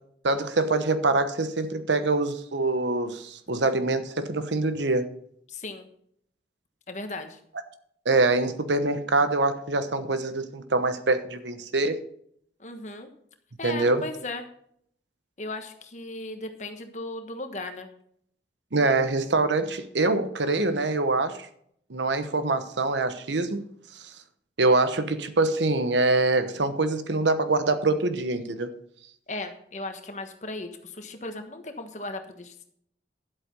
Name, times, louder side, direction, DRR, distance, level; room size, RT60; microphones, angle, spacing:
voice 1, 0.2-5.1 8.0-12.0 13.6-14.1 18.7-21.4 21.9-23.7 24.6-28.7, right 2 dB, 85° right, 10 dB, 1.0 m, -24 dB
voice 2, 5.5-5.9 6.9-7.4 12.6-13.1 13.6-14.5 15.4-17.9 29.3-32.7, left 2 dB, 40° left, 6 dB, 1.3 m, -36 dB
11.0 x 8.1 x 5.4 m, 0.68 s
head